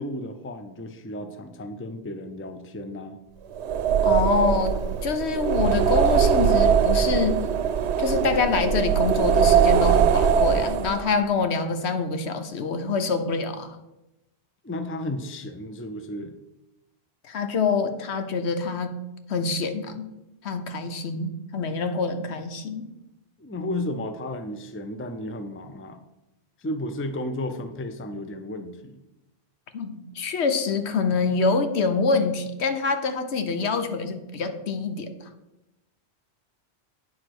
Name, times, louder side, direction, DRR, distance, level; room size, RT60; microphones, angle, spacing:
voice 1, 0.0-3.2 14.6-16.3 23.4-26.0 26.6-29.0, left 1 dB, 15° left, 9 dB, 0.4 m, -33 dB
sound 1, 3.6-11.1, right 7 dB, 90° right, 0.9 m, -21 dB
voice 2, 4.0-4.8 5.0-7.4 8.0-13.8 17.2-19.0 19.3-20.1 20.4-22.9 29.7-35.1, left 4 dB, 80° left, 8 dB, 1.2 m, -26 dB
9.1 x 5.0 x 6.0 m, 0.95 s
omnidirectional pair, 1.1 m